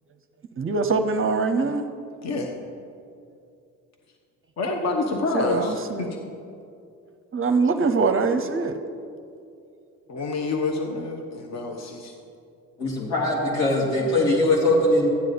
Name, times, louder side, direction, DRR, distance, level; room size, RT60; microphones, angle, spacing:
voice 1, 0.6-1.8 5.1-6.1 7.3-8.8, right 4 dB, 30° right, 7 dB, 0.8 m, -23 dB
voice 2, 4.6-6.2 10.1-12.1, left 3 dB, 40° left, 2 dB, 1.2 m, -27 dB
voice 3, 12.8-15.1, left 1 dB, 70° left, -3 dB, 2.7 m, -21 dB
13.0 x 9.1 x 4.0 m, 2.5 s
hypercardioid pair, 55°, 42 cm